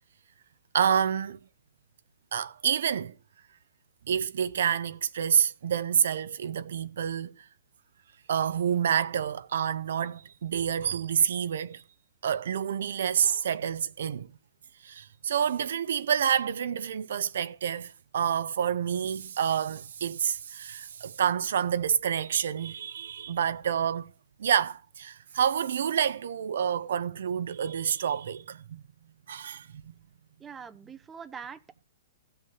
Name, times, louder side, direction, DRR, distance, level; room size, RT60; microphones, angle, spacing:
voice 1, 0.7-1.4 2.3-3.1 4.1-7.4 8.3-11.8 12.2-14.3 14.8-24.1 24.4-28.8 29.3-29.7, right 8 dB, 70° right, 0.6 m, -28 dB
voice 2, 30.4-31.8, right 6 dB, 10° right, 0.7 m, -43 dB
15.0 x 5.6 x 9.6 m
hypercardioid pair, 155°, 0 cm